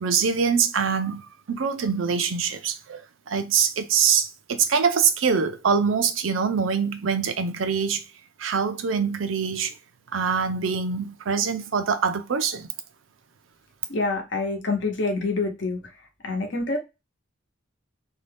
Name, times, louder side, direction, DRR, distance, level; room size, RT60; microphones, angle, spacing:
voice 1, 0.0-3.0 3.3-8.0 8.4-9.7 10.1-12.7, right 6 dB, 80° right, 0.5 m, -24 dB
voice 2, 13.9-15.8 16.2-16.8, left 3 dB, 65° left, 0.9 m, -26 dB
2.7 x 2.2 x 3.3 m
head